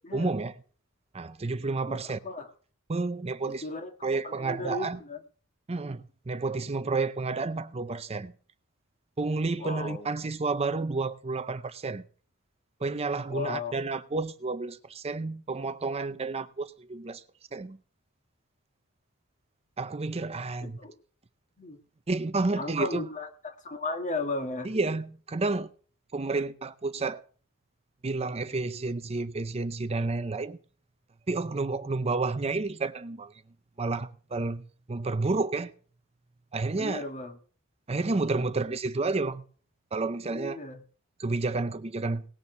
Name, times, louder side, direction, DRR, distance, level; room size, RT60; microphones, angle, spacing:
voice 1, 0.1-0.5 1.1-2.2 2.9-3.7 4.0-5.0 5.7-8.3 9.2-12.0 12.8-17.2 17.5-17.8 19.8-20.8 22.1-23.1 24.6-25.7 26.1-27.2 28.0-30.6 31.3-33.4 33.8-34.6 34.9-35.7 36.5-37.1 37.9-39.4 39.9-40.6 41.2-42.3, right 3 dB, 30° right, 0.6 m, -30 dB
voice 2, 1.9-2.5 3.5-3.9 4.2-5.2 9.6-10.1 13.3-13.7 20.6-20.9 21.6-21.8 22.5-24.7 36.8-37.4 40.3-40.8, left 3 dB, 35° left, 1.8 m, -35 dB
18.5 x 7.0 x 6.7 m
head